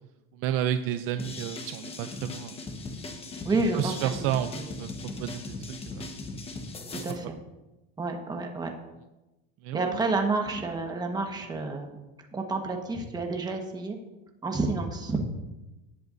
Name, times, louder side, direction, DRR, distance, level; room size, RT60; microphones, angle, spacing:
voice 1, 0.4-2.6 3.7-4.9 5.2-6.1 9.6-9.8, right 11 dB, 50° right, 9 dB, 0.5 m, -31 dB
sound 1, 1.2-7.1, left 3 dB, 20° left, 1.1 m, -38 dB
voice 2, 3.4-4.1 4.5-4.7 6.9-7.4 8.0-8.7 9.7-12.0 12.3-14.0 14.4-15.2, right 3 dB, 15° right, 3 dB, 1.3 m, -29 dB
18.5 x 7.9 x 2.6 m, 1.0 s
cardioid pair, 155°, 30 cm